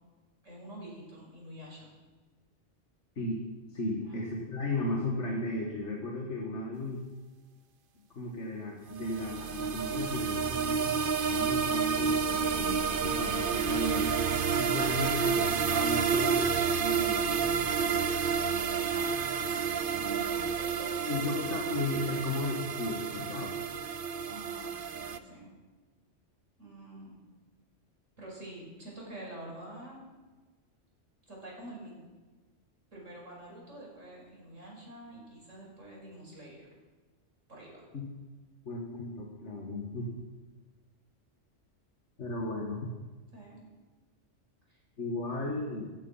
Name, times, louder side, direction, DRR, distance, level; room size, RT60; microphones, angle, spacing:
voice 1, 0.4-1.9 4.1-4.2 18.3-21.2 24.2-25.5 26.6-27.2 28.2-30.0 31.3-31.9 32.9-36.7 37.5-37.9 43.3-43.7 44.7-44.8, right 1 dB, 90° right, -3 dB, 6.0 m, -47 dB
voice 2, 3.7-7.0 8.2-10.9 11.2-14.2 14.6-18.2 21.1-23.6 37.9-38.1 38.6-40.1 42.2-42.9 45.0-45.9, left 2 dB, 70° left, -1 dB, 2.4 m, -35 dB
sound 1, 9.0-25.2, right 6 dB, 50° right, 0.9 m, -30 dB
16.0 x 15.0 x 5.9 m, 1.3 s
omnidirectional pair, 1.3 m